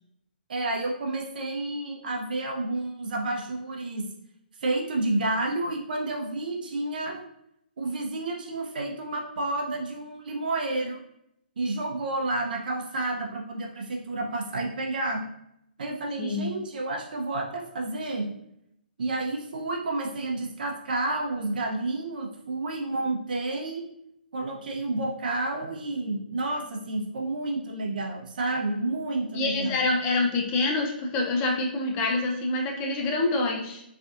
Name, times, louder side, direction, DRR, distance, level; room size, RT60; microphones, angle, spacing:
voice 1, 0.5-4.0 4.6-7.2 7.8-11.0 11.6-15.2 15.8-18.3 19.0-23.8 24.3-29.7, right 2 dB, 60° right, 0 dB, 0.7 m, -30 dB
voice 2, 16.2-16.6 29.3-33.8, left 2 dB, 25° left, 0 dB, 0.5 m, -26 dB
3.3 x 2.5 x 2.4 m, 0.78 s
figure-of-eight pair, 135°, 5 cm